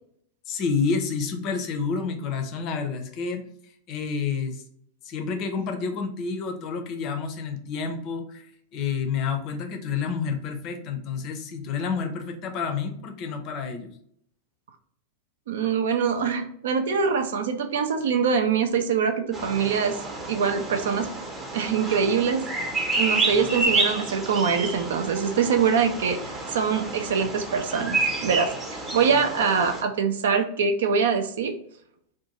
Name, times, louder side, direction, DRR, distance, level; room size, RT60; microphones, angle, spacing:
voice 1, 0.5-4.6 5.0-14.0, left 5 dB, 40° left, 6 dB, 0.5 m, -29 dB
voice 2, 15.5-20.0 20.3-21.1 21.5-22.4 23.0-26.2 26.5-31.5, right 6 dB, 60° right, 7 dB, 0.4 m, -24 dB
Bird vocalization bird call bird song, 19.3-29.8, right 3 dB, 25° right, 0.8 m, -29 dB
2.6 x 2.2 x 2.9 m, 0.66 s
figure-of-eight pair, 90°, 0 cm